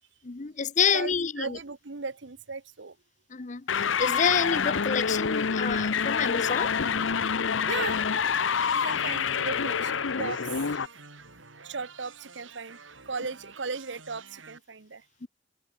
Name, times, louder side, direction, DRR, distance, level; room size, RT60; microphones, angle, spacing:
voice 1, 0.2-1.6 3.3-3.6 4.0-6.7 15.2-15.3, left 6 dB, 40° left, 0.7 m, -28 dB
voice 2, 0.9-3.0 7.7-8.1 8.4-8.5 8.7-10.5 11.6-12.8 13.1-15.0, right 4 dB, 65° right, 1.0 m, -37 dB
sound 1, 3.7-10.9, left 6 dB, 80° left, 0.8 m, -27 dB
sound 2, 7.7-14.6, right 5 dB, 85° right, 7.4 m, -50 dB
head